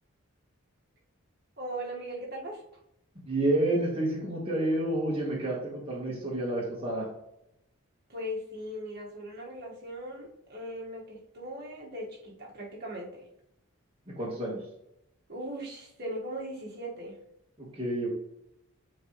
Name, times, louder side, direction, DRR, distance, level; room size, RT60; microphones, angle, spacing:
voice 1, 1.6-2.6 8.1-13.2 15.3-17.1, equal, 45° right, -3 dB, 1.7 m, -39 dB
voice 2, 3.3-7.1 14.2-14.6 17.6-18.1, right 1 dB, 25° right, -5 dB, 1.4 m, -29 dB
9.1 x 3.8 x 3.1 m, 0.79 s
head